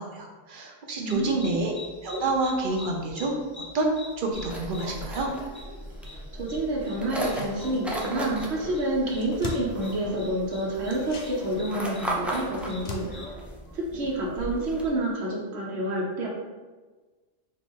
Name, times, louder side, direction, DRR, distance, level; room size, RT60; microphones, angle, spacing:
voice 1, 0.0-1.7 2.0-3.3 3.7-5.3, right 2 dB, 55° right, 0 dB, 0.8 m, -28 dB
voice 2, 1.0-1.5 6.3-13.1 13.7-16.3, right 1 dB, 85° right, -2 dB, 1.1 m, -28 dB
sound 1, 1.1-13.3, left 2 dB, 15° left, 0.9 m, -45 dB
sound 2, 4.3-14.9, right 1 dB, ahead, 0.3 m, -37 dB
sound 3, 7.1-8.2 8.5-8.6 8.9-10.4 10.8-14.6 14.9-15.0, left 2 dB, 55° left, 0.7 m, -42 dB
4.4 x 2.5 x 3.6 m, 1.3 s
omnidirectional pair, 1.1 m